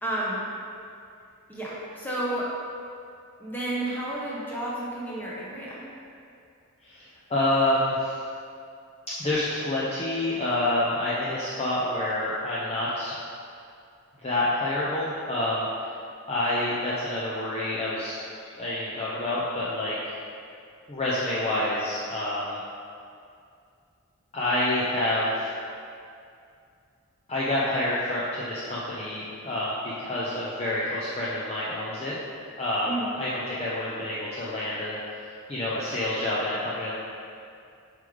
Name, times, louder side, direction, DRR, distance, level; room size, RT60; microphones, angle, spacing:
voice 1, 0.0-0.5 1.5-2.5 3.4-5.8 32.9-33.1, right 1 dB, 10° left, -7 dB, 1.2 m, -31 dB
voice 2, 6.9-8.2 9.2-13.2 14.2-15.6 16.3-18.2 18.6-20.2 20.9-22.6 24.3-25.5 27.3-32.1 32.6-32.9 33.2-35.0 35.5-36.9, left 1 dB, 30° left, -8 dB, 0.6 m, -28 dB
7.4 x 4.9 x 3.4 m, 2.4 s
head